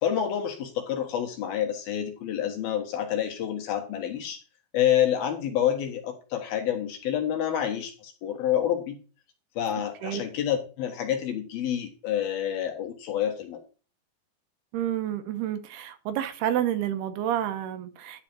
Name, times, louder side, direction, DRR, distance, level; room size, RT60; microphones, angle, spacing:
voice 1, 0.0-4.4 4.7-9.0 9.6-13.6, left 10 dB, 70° left, 3.2 m, -28 dB
voice 2, 14.7-18.2, right 11 dB, 75° right, 2.8 m, -29 dB
11.5 x 4.2 x 7.3 m
omnidirectional pair, 4.8 m